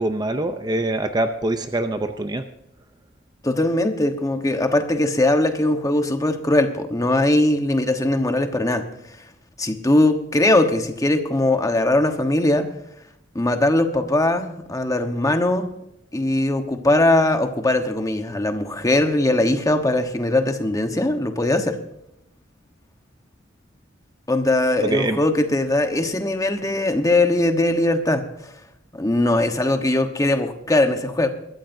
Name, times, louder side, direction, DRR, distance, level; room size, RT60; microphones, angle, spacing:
voice 1, 0.0-2.4 24.8-25.2, right 1 dB, 20° right, 8 dB, 0.6 m, -24 dB
voice 2, 3.4-8.8 9.6-12.7 13.3-15.7 16.1-21.8 24.3-28.5 28.9-31.3, left 1 dB, 20° left, 6 dB, 1.1 m, -20 dB
22.0 x 13.5 x 2.7 m, 0.80 s
head